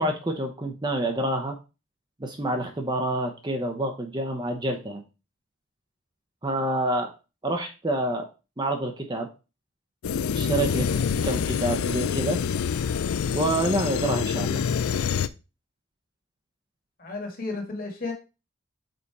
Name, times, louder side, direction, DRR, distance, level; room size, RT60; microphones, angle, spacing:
voice 1, 0.0-1.6 2.2-5.0 6.4-7.1 7.4-8.3 8.6-9.3 10.3-10.9 11.2-12.4 13.3-14.6, right 1 dB, 20° right, 4 dB, 0.7 m, -27 dB
sound 1, 10.0-15.3, left 7 dB, 90° left, 0.4 m, -26 dB
voice 2, 17.0-18.1, left 3 dB, 40° left, 3 dB, 1.7 m, -33 dB
5.2 x 4.2 x 4.7 m, 0.30 s
head